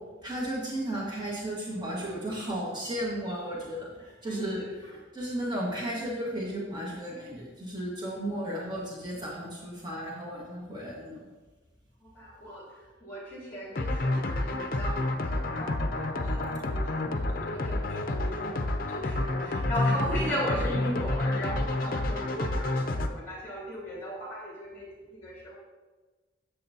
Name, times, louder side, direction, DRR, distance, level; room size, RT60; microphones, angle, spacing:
voice 1, 0.2-4.6 5.1-11.2, right 1 dB, 20° right, -4 dB, 1.5 m, -34 dB
voice 2, 4.0-5.0 12.0-25.5, equal, 10° left, -5 dB, 2.9 m, -37 dB
sound 1, 13.8-23.1, left 2 dB, 45° left, 0.6 m, -29 dB
10.5 x 7.7 x 2.8 m, 1.3 s
head